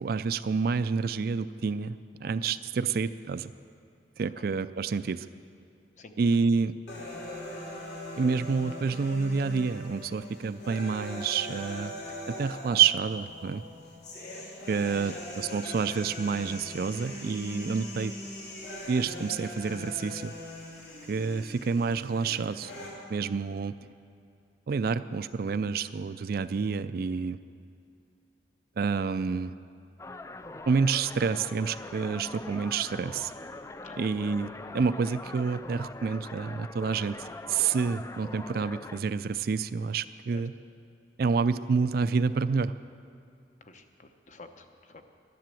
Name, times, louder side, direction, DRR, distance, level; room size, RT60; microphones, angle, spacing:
voice 1, 0.0-3.5 4.2-5.3 6.2-6.8 8.2-13.6 14.7-18.1 18.9-20.3 21.1-22.7 23.1-23.7 24.7-27.4 28.8-29.5 30.7-33.3 34.0-40.5 41.2-42.7, right 5 dB, 55° right, 14 dB, 0.4 m, -28 dB
sound 1, 6.9-22.9, left 1 dB, 65° left, 3.2 m, -41 dB
sound 2, 30.0-39.0, left 2 dB, 15° left, 0.3 m, -42 dB
voice 2, 43.6-45.1, left 3 dB, 45° left, 6 dB, 0.9 m, -50 dB
12.0 x 10.5 x 7.7 m, 2.5 s
head